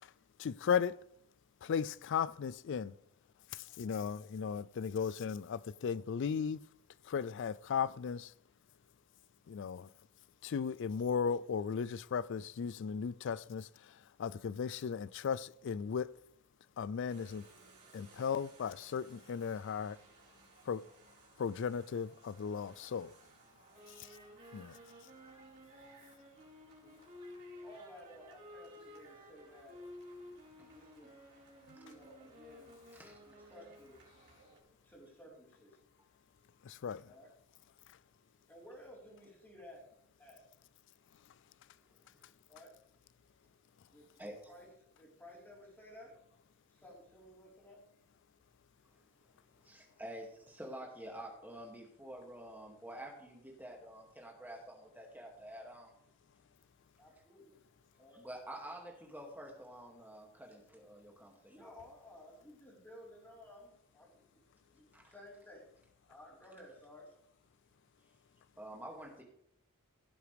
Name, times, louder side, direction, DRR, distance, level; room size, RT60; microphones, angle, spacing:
voice 1, 0.4-0.9 1.6-2.9 3.8-6.6 7.1-8.3 9.5-9.9 10.4-13.7 14.2-16.1 16.8-17.4 17.9-20.0 20.7-20.8 21.4-23.1 24.5-24.7 36.7-37.0, left 6 dB, 55° left, 0.4 m, -36 dB
sound 1, 17.1-34.6, right 3 dB, 55° right, 4.6 m, -63 dB
sound 2, 23.7-34.1, left 1 dB, 35° right, 2.7 m, -54 dB
voice 2, 26.4-27.0 27.6-29.8 30.6-31.1 31.7-32.7 33.2-33.9 34.8-35.8 37.0-37.3 38.5-39.9 40.2-40.4 42.5-42.7 43.9-44.7 45.0-46.1 46.7-47.8 57.0-57.6 58.0-58.2 61.5-64.4 64.7-65.7 66.1-67.1, left 1 dB, 10° left, 4.2 m, -56 dB
voice 3, 41.9-42.2 44.2-44.5 49.6-55.9 58.1-61.7 64.9-65.1 68.6-69.2, right 1 dB, 10° right, 2.3 m, -49 dB
16.5 x 8.0 x 3.4 m
head